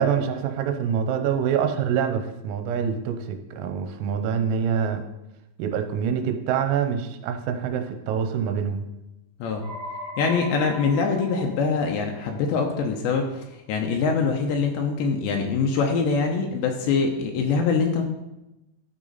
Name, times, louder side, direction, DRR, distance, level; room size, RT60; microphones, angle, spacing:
voice 1, 0.0-5.0 5.6-8.9, right 7 dB, 85° right, 7 dB, 3.5 m, -25 dB
sound 1, 9.6-13.0, left 1 dB, 40° right, 3.7 m, -39 dB
voice 2, 10.2-18.0, left 5 dB, 80° left, 3 dB, 2.6 m, -24 dB
12.5 x 6.1 x 4.0 m, 0.94 s
omnidirectional pair, 6.0 m